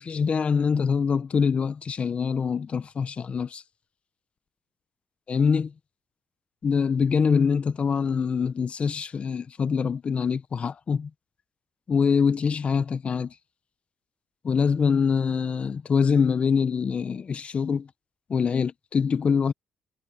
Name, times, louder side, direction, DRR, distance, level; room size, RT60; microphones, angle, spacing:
voice 1, 0.0-3.6 5.3-5.7 6.6-11.1 11.9-13.3 14.4-17.9 18.3-19.5, left 6 dB, 45° left, 0.9 m, -24 dB
cardioid pair, 75°, 3 cm